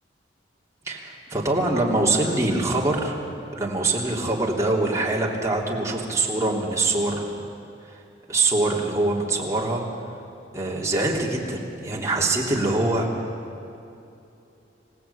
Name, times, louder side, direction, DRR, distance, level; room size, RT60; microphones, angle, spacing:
voice 1, 0.9-3.2 3.5-7.3 8.3-9.8 10.5-13.1, right 2 dB, 15° right, -3 dB, 3.2 m, -24 dB
27.0 x 17.0 x 8.6 m, 2.8 s
head